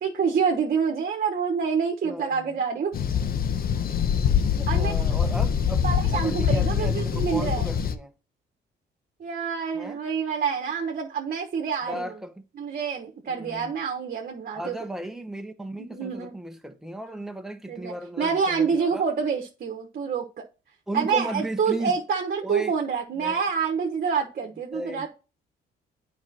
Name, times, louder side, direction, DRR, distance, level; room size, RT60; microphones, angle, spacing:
voice 1, 0.0-2.9 4.7-5.1 5.8-7.7 9.2-12.1 12.6-14.8 15.8-16.3 17.7-20.2 20.9-25.1, right 6 dB, 50° right, 1.2 m, -27 dB
voice 2, 2.0-2.6 4.6-5.9 6.1-8.1 9.7-10.0 11.8-12.4 13.3-13.7 14.5-19.0 20.9-22.0 22.4-22.7 23.1-23.4 24.7-25.1, right 1 dB, ahead, 1.1 m, -35 dB
sound 1, 2.9-7.9, left 7 dB, 50° left, 0.8 m, -24 dB
8.8 x 5.0 x 2.9 m
cardioid pair, 90°, 20 cm